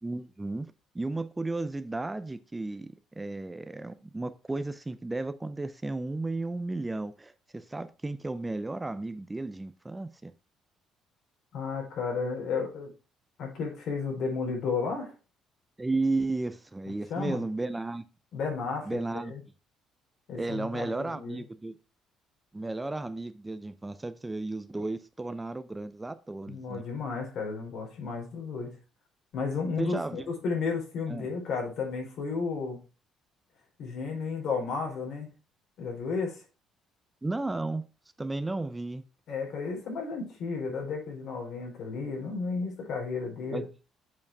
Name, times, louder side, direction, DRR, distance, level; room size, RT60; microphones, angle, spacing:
voice 1, 0.0-0.7 0.9-10.3 15.8-18.0 18.9-19.3 20.3-21.8 22.5-26.8 29.8-30.3 31.1-31.3 37.2-37.8 38.2-39.0 43.5-43.6, right 2 dB, 15° right, 0.5 m, -34 dB
voice 2, 11.5-12.9 13.4-15.1 17.1-17.5 18.3-19.4 20.3-21.4 26.5-28.7 29.3-32.8 33.8-35.3 35.8-36.4 39.3-43.7, left 4 dB, 70° left, 4.1 m, -33 dB
7.4 x 5.1 x 4.7 m
cardioid pair, 110°, 0 cm